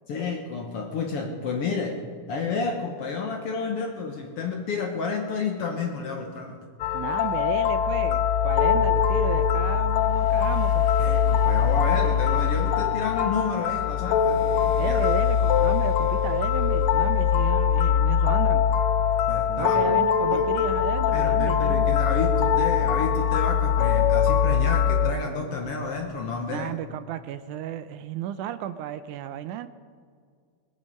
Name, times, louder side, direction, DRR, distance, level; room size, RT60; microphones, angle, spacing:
voice 1, 0.1-2.0 2.3-6.6 8.7-8.8 11.0-15.0 19.3-20.5 21.1-26.7, left 4 dB, 60° left, 2 dB, 1.6 m, -30 dB
sound 1, 6.8-25.1, left 8 dB, 80° left, 1.6 m, -22 dB
voice 2, 6.9-10.8 14.8-18.6 19.6-22.0 26.5-29.7, right 11 dB, 80° right, 11 dB, 1.9 m, -33 dB
22.0 x 8.9 x 5.4 m, 2.1 s
omnidirectional pair, 3.7 m